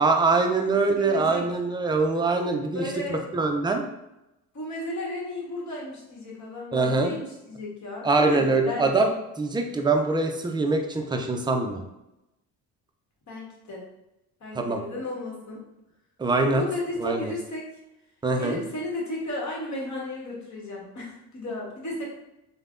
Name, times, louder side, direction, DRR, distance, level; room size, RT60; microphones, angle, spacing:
voice 1, 0.0-3.8 6.7-7.2 8.0-9.1 9.4-11.8 14.6-14.8 16.2-16.6 17.0-17.3 18.2-18.6, right 3 dB, 10° right, 3 dB, 0.3 m, -23 dB
voice 2, 0.6-1.5 2.7-3.2 4.5-9.0 13.3-13.8 14.4-15.6 16.5-17.7 18.4-22.0, left 2 dB, 40° left, -3 dB, 1.1 m, -34 dB
3.2 x 2.2 x 2.4 m, 0.90 s
supercardioid pair, 60°, 42 cm